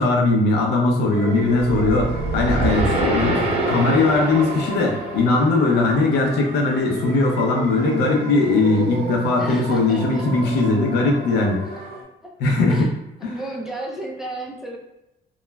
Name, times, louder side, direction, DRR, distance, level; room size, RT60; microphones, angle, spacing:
voice 1, 0.0-11.9 12.4-12.9 13.2-13.3, left 3 dB, 80° left, 0 dB, 0.6 m, -20 dB
sound 1, 1.1-12.0, right 3 dB, 70° right, 0.6 m, -32 dB
sound 2, 1.5-5.9, right 1 dB, 35° right, 0.8 m, -25 dB
voice 2, 9.4-10.3 12.2-12.9 13.3-14.8, right 1 dB, ahead, -2 dB, 0.4 m, -33 dB
3.0 x 2.3 x 2.2 m, 0.90 s
cardioid pair, 110°, 17 cm